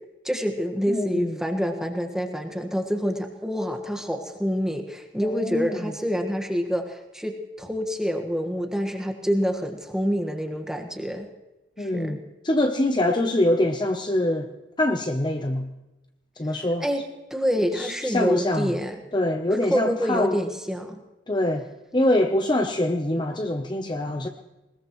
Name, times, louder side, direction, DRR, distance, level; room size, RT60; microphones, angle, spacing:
voice 1, 0.2-11.3 11.8-12.2 16.8-17.0 17.3-19.0 19.5-21.0, equal, 5° right, 4 dB, 1.5 m, -27 dB
voice 2, 0.9-1.4 5.2-5.9 11.8-12.2 12.4-14.5 14.8-15.7 16.4-16.9 17.7-18.7 19.1-20.4 21.3-21.6 21.9-24.3, left 1 dB, 25° left, 4 dB, 0.8 m, -24 dB
20.5 x 20.5 x 3.1 m, 1.0 s
head